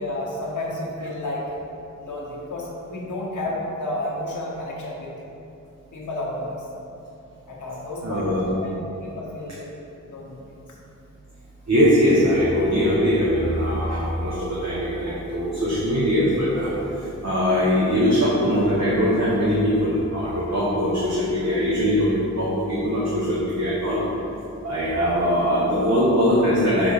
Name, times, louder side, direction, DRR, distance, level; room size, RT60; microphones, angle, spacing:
voice 1, 0.0-1.4 2.0-5.1 5.9-6.6 7.5-9.7 10.1-10.4, left 1 dB, 70° left, -4 dB, 1.2 m, -31 dB
voice 2, 8.0-8.5 11.7-24.0 24.6-26.9, equal, 60° right, -8 dB, 1.1 m, -21 dB
6.1 x 3.5 x 4.8 m, 2.8 s
wide cardioid pair, 105°, 31 cm